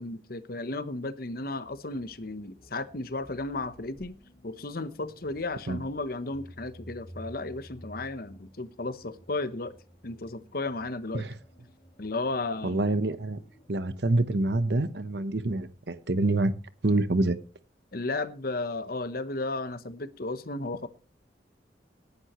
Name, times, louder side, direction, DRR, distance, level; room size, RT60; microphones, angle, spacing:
voice 1, 0.0-4.2 4.4-9.8 10.0-11.2 12.0-12.8 17.9-20.9, left 2 dB, 55° left, 1.0 m, -34 dB
sound 1, 1.6-13.8, equal, 35° left, 3.7 m, -53 dB
voice 2, 12.6-13.4 13.7-16.5 16.8-17.4, right 2 dB, 70° right, 1.0 m, -26 dB
18.5 x 10.5 x 3.1 m
head